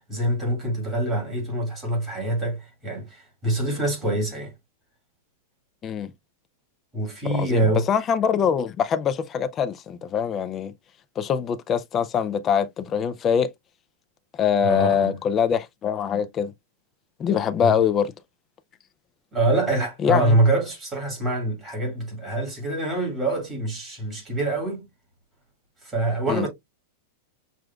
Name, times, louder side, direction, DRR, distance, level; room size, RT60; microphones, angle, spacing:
voice 1, 0.0-4.5 6.9-7.9 14.6-15.2 17.6-17.8 19.3-24.9 25.8-26.5, right 1 dB, 20° right, 1.8 m, -25 dB
voice 2, 7.3-10.7 11.2-13.5 14.3-16.5 17.2-18.1 20.0-20.3 26.3-26.5, left 7 dB, 20° left, 0.4 m, -23 dB
6.2 x 2.4 x 2.2 m
supercardioid pair, 160°, 0 cm